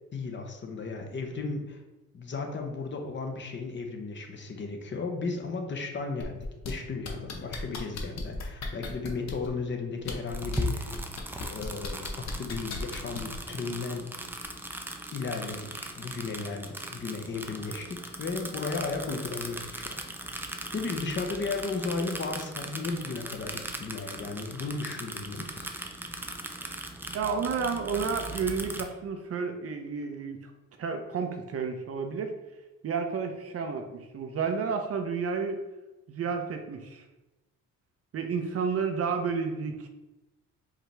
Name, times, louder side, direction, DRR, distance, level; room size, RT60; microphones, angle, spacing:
voice 1, 0.1-1.8 2.1-6.4 6.6-10.9 11.4-14.2 15.1-19.9 20.4-25.7, left 4 dB, 40° left, 3 dB, 0.9 m, -35 dB
sound 1, 6.2-6.7 7.0-9.5 10.0-10.6 10.9-13.4 14.4-14.5, left 4 dB, 60° left, 0.9 m, -38 dB
sound 2, 10.3-28.8, right 1 dB, 5° right, 0.5 m, -39 dB
voice 2, 27.1-30.5 30.8-32.3 32.8-35.6 36.1-37.0 38.1-39.9, right 5 dB, 50° right, 5 dB, 0.6 m, -31 dB
4.8 x 2.9 x 3.3 m, 1.0 s
cardioid pair, 90°, 30 cm